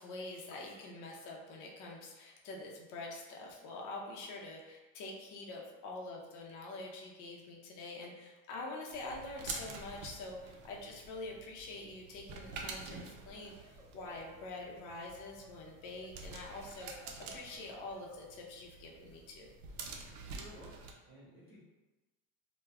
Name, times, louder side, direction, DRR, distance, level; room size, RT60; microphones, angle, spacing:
voice 1, 0.0-19.5, left 2 dB, 55° left, -1 dB, 0.6 m, -46 dB
sound 1, 8.9-20.9, right 4 dB, 70° right, 0.6 m, -48 dB
Laughter, 13.3-18.4, equal, 10° right, 0.4 m, -59 dB
voice 2, 20.3-21.6, equal, 25° right, -8 dB, 1.1 m, -55 dB
2.2 x 2.1 x 3.3 m, 1.1 s
supercardioid pair, 100°, 37 cm